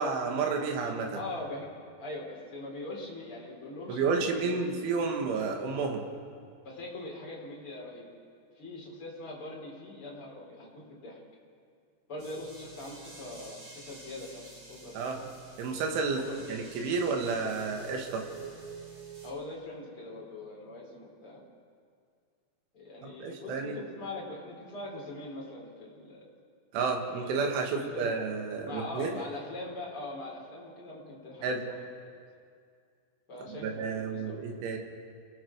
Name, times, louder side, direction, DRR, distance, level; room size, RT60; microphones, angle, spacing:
voice 1, 0.0-1.2 3.9-6.1 15.0-15.2 15.6-16.2 16.5-18.3 23.0-23.8 26.7-29.1 31.4-31.6 33.5-34.8, right 4 dB, 75° right, 2 dB, 4.3 m, -31 dB
voice 2, 1.1-4.5 6.6-8.1 8.5-11.2 12.1-15.3 16.1-16.8 19.2-21.4 22.7-26.3 27.1-27.3 27.6-28.2 28.6-31.8 33.3-34.6, left 2 dB, 30° left, -3 dB, 4.7 m, -42 dB
Glass meadow, 12.2-19.3, right 5 dB, 35° right, 4.1 m, -48 dB
30.0 x 19.0 x 4.8 m, 2.2 s
omnidirectional pair, 5.6 m